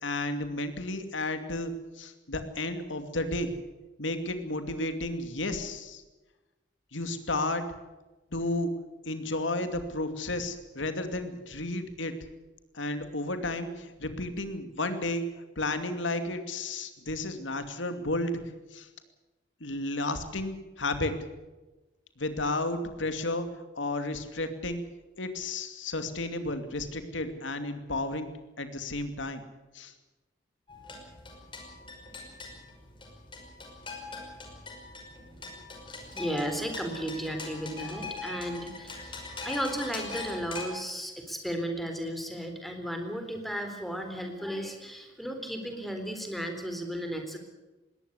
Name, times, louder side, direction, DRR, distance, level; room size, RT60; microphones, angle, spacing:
voice 1, 0.0-3.5 4.0-6.0 6.9-7.6 8.3-8.7 9.1-12.1 12.7-15.2 15.6-18.4 18.7-18.9 19.6-21.1 22.2-23.5 23.8-24.8 25.2-28.3 28.6-29.4 29.7-29.9, left 2 dB, 85° left, 8 dB, 2.5 m, -32 dB
sound 1, 30.7-40.6, left 3 dB, 25° left, 5.4 m, -42 dB
voice 2, 36.1-39.0 39.4-47.4, equal, ahead, 6 dB, 3.7 m, -34 dB
21.0 x 17.5 x 8.3 m, 1.1 s
head